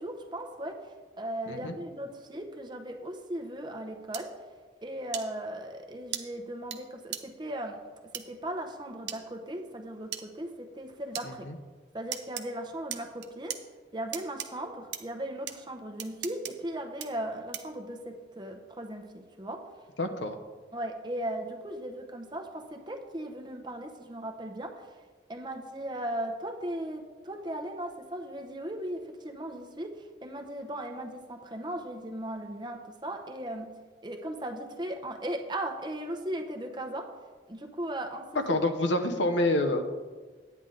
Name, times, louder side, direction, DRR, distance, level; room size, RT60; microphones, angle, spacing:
voice 1, 0.0-4.3 4.8-7.8 8.1-11.5 11.9-13.6 13.9-19.7 20.7-24.9 25.3-33.8 34.0-37.1 37.5-38.6, right 1 dB, 25° right, 4 dB, 0.8 m, -37 dB
sound 1, 4.1-4.2 5.1-5.2 6.1-6.2 6.7-6.8 7.1-7.2 8.1-8.2 9.1-9.2 10.1-10.2 11.1-11.3 12.1-12.4 12.9-13.6 14.1-14.5 14.9-15.0 15.5-15.6 16.0-16.5 17.0-17.1 17.5-17.8, right 11 dB, 75° right, 0.7 m, -36 dB
voice 2, 11.2-11.6 20.0-20.4 38.5-39.8, left 1 dB, 80° left, 7 dB, 0.9 m, -27 dB
9.8 x 9.4 x 3.8 m, 1.4 s
head